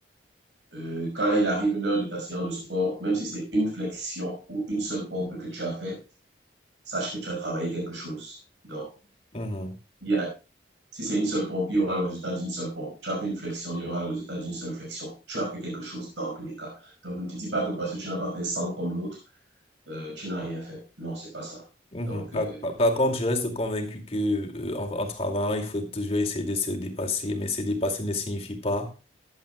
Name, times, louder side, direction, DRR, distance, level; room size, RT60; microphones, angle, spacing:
voice 1, 0.7-6.0 6.9-8.4 8.6-8.9 10.0-10.3 10.9-19.2 19.9-21.6 22.1-22.7, right 1 dB, 75° right, -1 dB, 5.5 m, -30 dB
voice 2, 9.3-9.8 21.9-28.9, left 1 dB, 30° left, 2 dB, 2.4 m, -28 dB
15.5 x 11.0 x 2.3 m, 0.31 s
head